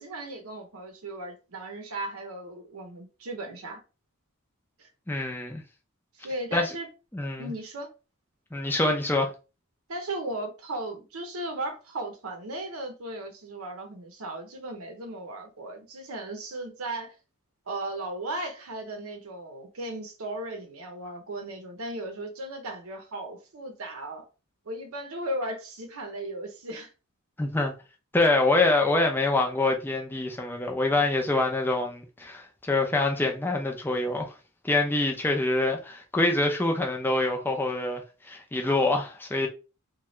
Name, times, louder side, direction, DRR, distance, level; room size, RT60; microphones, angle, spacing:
voice 1, 0.0-3.8 4.8-4.9 6.1-6.9 7.4-7.9 9.9-17.1 17.7-24.3 24.7-26.9, right 1 dB, 70° right, 0.7 m, -36 dB
voice 2, 5.1-5.6 6.5-6.7 7.1-7.5 8.5-9.3 27.4-27.7 28.1-34.3 34.6-38.0 38.3-39.5, left 2 dB, 10° left, 0.5 m, -25 dB
2.7 x 2.3 x 3.1 m
head